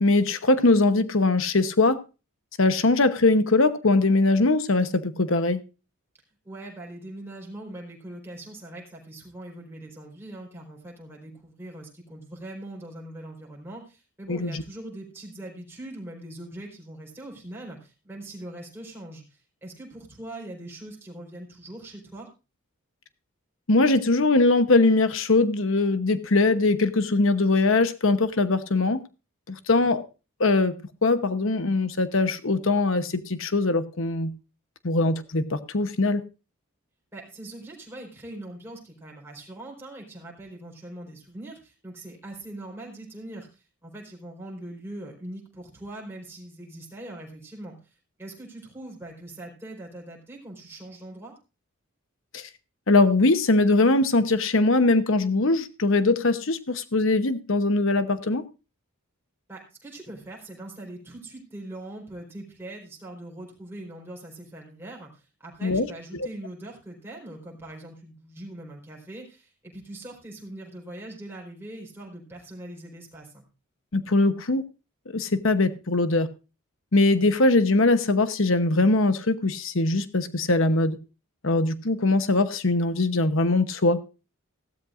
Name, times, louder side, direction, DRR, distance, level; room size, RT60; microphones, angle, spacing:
voice 1, 0.0-2.0 2.6-5.6 14.3-14.6 23.7-29.0 29.5-30.0 30.4-30.7 31.0-34.3 34.8-36.2 52.3-52.4 52.9-58.4 65.6-65.9 73.9-74.6 75.1-76.3 76.9-81.0 81.4-84.0, left 2 dB, 60° left, 1.0 m, -21 dB
voice 2, 6.4-22.3 37.1-47.8 48.2-51.3 59.5-73.4, right 1 dB, 10° right, 4.3 m, -41 dB
16.0 x 12.5 x 2.5 m
head